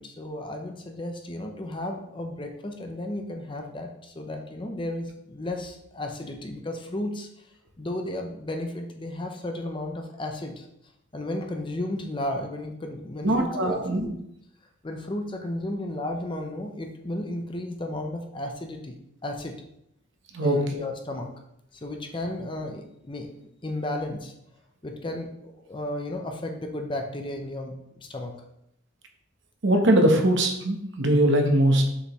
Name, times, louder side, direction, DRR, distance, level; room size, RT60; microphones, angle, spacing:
voice 1, 0.0-7.4 7.8-10.7 11.1-14.2 14.8-19.6 20.4-21.3 21.8-23.3 23.6-24.3 24.8-28.3, left 1 dB, 25° left, 4 dB, 0.6 m, -34 dB
voice 2, 13.2-14.1 20.3-20.6 29.6-31.9, right 1 dB, 55° right, 3 dB, 0.9 m, -21 dB
6.6 x 4.9 x 3.0 m, 0.77 s
head